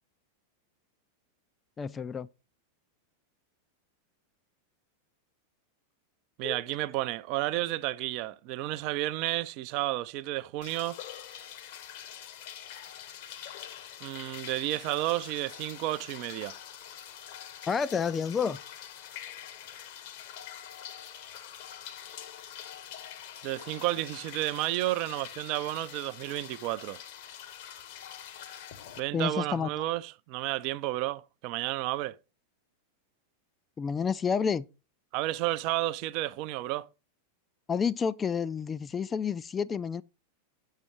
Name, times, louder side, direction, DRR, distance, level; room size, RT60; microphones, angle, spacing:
voice 1, 1.8-2.3 6.4-6.6 17.7-18.6 29.1-29.8 33.8-34.6 37.7-40.0, left 6 dB, 20° left, 0.4 m, -30 dB
voice 2, 6.4-11.0 14.0-16.5 23.4-27.0 29.0-32.2 35.1-36.9, right 16 dB, 45° right, 0.4 m, -31 dB
sound 1, 10.6-29.0, left 10 dB, 50° left, 1.0 m, -45 dB
6.9 x 5.6 x 5.2 m
figure-of-eight pair, 90°, 0 cm